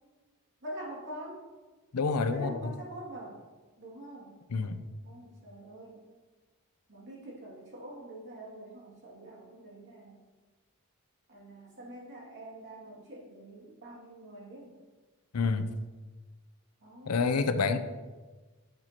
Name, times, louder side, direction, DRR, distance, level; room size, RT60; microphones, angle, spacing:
voice 1, 0.6-1.4 2.3-3.4 3.8-4.4 5.0-6.0 6.9-10.2 11.3-14.8 16.8-17.3, right 1 dB, 55° right, -4 dB, 2.5 m, -45 dB
voice 2, 1.9-2.7 4.5-4.9 15.3-15.7 17.1-17.8, left 4 dB, 85° left, 9 dB, 0.6 m, -28 dB
10.5 x 6.6 x 3.0 m, 1.3 s
head